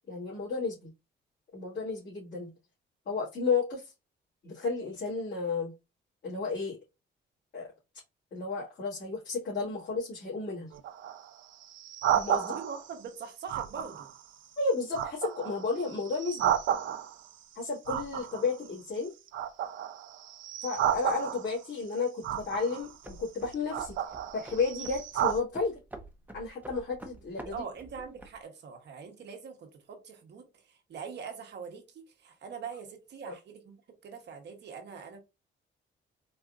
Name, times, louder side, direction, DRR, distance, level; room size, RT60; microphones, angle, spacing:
voice 1, 0.1-0.9 1.5-2.5 3.1-3.9 4.4-5.7 6.2-6.8 7.5-7.7 8.3-10.7 12.1-12.6 14.6-16.6 17.6-19.1 20.6-24.0 24.3-25.7 26.3-27.6 33.3-33.4, left 4 dB, 60° left, 1.9 m, -32 dB
sound 1, 10.7-12.9 13.5-14.2 14.6-17.3 17.9-19.0 19.3-21.7 22.2-22.9 23.5-25.4, right 10 dB, 75° right, 0.5 m, -32 dB
voice 2, 12.4-14.1 27.4-33.7 34.0-35.2, right 6 dB, 60° right, 1.0 m, -43 dB
sound 2, 22.8-28.4, right 1 dB, 10° right, 0.8 m, -48 dB
4.2 x 2.5 x 2.4 m
cardioid pair, 90°, 20 cm